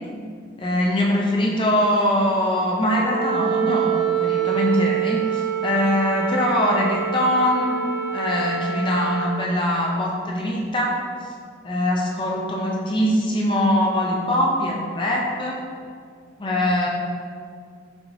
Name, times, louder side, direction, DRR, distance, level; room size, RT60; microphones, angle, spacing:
voice 1, 0.6-7.8 8.1-10.9 11.2-11.3 11.6-15.6 16.4-16.9, left 1 dB, 25° left, -2 dB, 0.5 m, -22 dB
Wind instrument woodwind instrument, 3.0-9.3, right 9 dB, 90° right, 0.8 m, -26 dB
5.5 x 3.0 x 2.6 m, 2.2 s
head